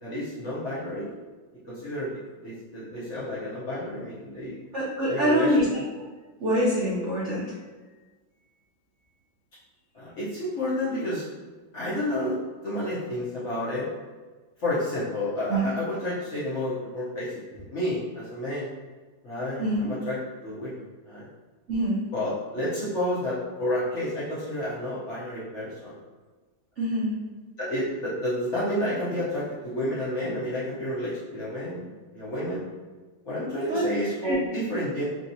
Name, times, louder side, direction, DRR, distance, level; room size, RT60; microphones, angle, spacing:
voice 1, 0.0-1.2 1.7-4.6 5.1-5.8 9.9-11.3 11.7-12.4 12.6-13.9 14.6-18.7 19.2-21.3 22.1-26.0 27.6-32.6 33.2-35.0, left 1 dB, 50° left, -9 dB, 1.0 m, -30 dB
voice 2, 4.7-5.8 6.4-7.5 15.5-15.7 19.6-19.9 21.7-22.0 26.8-27.1 33.7-33.9 34.2-34.4, right 1 dB, 65° right, -7 dB, 0.7 m, -25 dB
3.6 x 2.9 x 2.7 m, 1.3 s
omnidirectional pair, 2.1 m